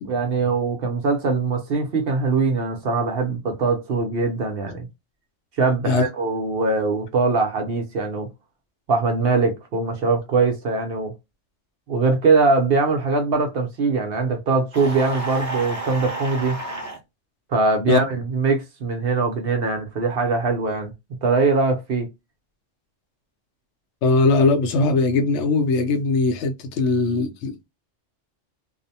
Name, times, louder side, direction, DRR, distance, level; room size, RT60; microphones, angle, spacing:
voice 1, 0.0-4.9 5.6-8.3 8.9-11.1 11.9-16.6 17.5-20.9 21.2-22.1, right 4 dB, 60° right, 0.7 m, -22 dB
sound 1, 14.7-17.0, right 2 dB, 15° right, 0.7 m, -30 dB
voice 2, 24.0-27.7, left 3 dB, 70° left, 0.8 m, -20 dB
2.6 x 2.0 x 2.7 m
omnidirectional pair, 1.3 m